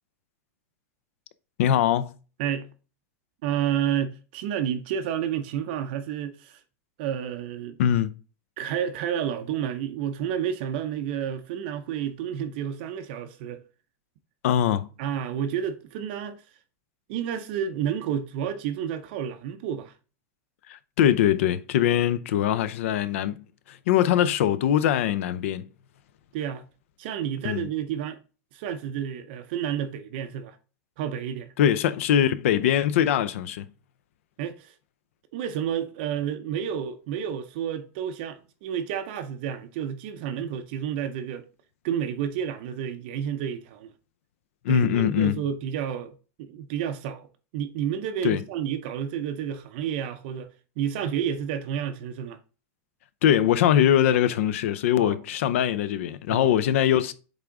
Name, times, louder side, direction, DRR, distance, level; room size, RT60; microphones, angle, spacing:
voice 1, 1.6-2.2 7.8-8.1 14.4-14.9 20.7-23.4 23.7-25.6 27.4-27.7 31.6-33.7 44.6-45.4 48.2-48.4 53.2-57.1, left 10 dB, 55° left, 0.6 m, -22 dB
voice 2, 2.4-2.7 3.4-6.6 7.0-7.8 8.6-13.6 15.0-16.4 17.1-19.9 26.3-26.6 27.0-28.2 28.5-30.6 31.0-31.5 34.4-34.7 35.3-41.4 41.8-43.9 44.7-47.3 47.5-50.5 50.8-52.4 55.0-55.2 56.3-56.5, right 9 dB, 40° right, 0.6 m, -30 dB
8.2 x 3.6 x 3.7 m
supercardioid pair, 180°, 8 cm